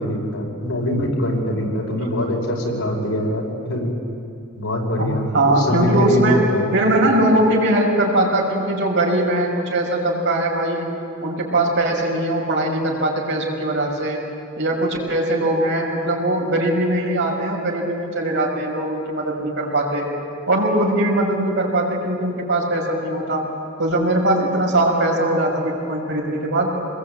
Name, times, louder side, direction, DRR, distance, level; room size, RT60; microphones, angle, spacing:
voice 1, 0.0-3.9 4.5-6.6, left 1 dB, 90° left, 0 dB, 5.7 m, -23 dB
voice 2, 5.0-6.4 6.7-10.9 11.2-14.2 14.6-20.1 20.5-23.4 23.8-26.7, right 1 dB, 60° right, -1 dB, 5.7 m, -20 dB
27.0 x 21.0 x 8.6 m, 2.6 s
head